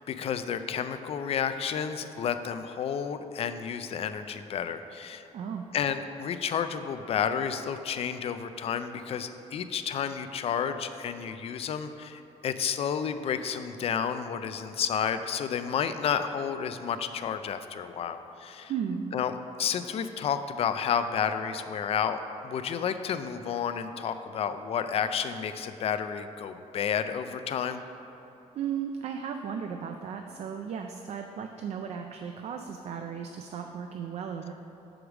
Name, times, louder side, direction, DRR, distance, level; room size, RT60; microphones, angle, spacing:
voice 1, 0.0-5.2 5.7-18.8 19.1-27.8, left 7 dB, 50° left, 10 dB, 0.3 m, -31 dB
voice 2, 5.3-5.7 18.7-19.1 28.5-34.5, right 7 dB, 55° right, 4 dB, 0.4 m, -35 dB
6.1 x 5.0 x 4.7 m, 3.0 s
cardioid pair, 125°, 13 cm